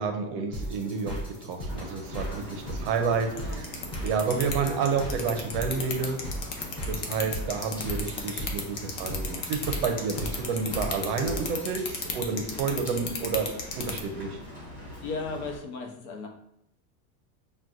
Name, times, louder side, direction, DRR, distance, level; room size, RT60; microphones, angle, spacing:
voice 1, 0.0-3.7 4.0-6.2 6.9-14.4, right 5 dB, 50° right, 5 dB, 0.5 m, -30 dB
sound 1, 0.5-11.9, equal, 10° left, 0.5 m, -38 dB
Rain, 1.7-15.6, equal, 5° right, 1.1 m, -43 dB
voice 2, 3.3-3.6 4.3-4.5 15.0-16.3, left 4 dB, 70° left, 2 dB, 0.9 m, -36 dB
sound 2, 3.4-14.0, left 6 dB, 45° left, 0.7 m, -32 dB
5.9 x 2.3 x 2.5 m, 0.77 s
cardioid pair, 170°, 45 cm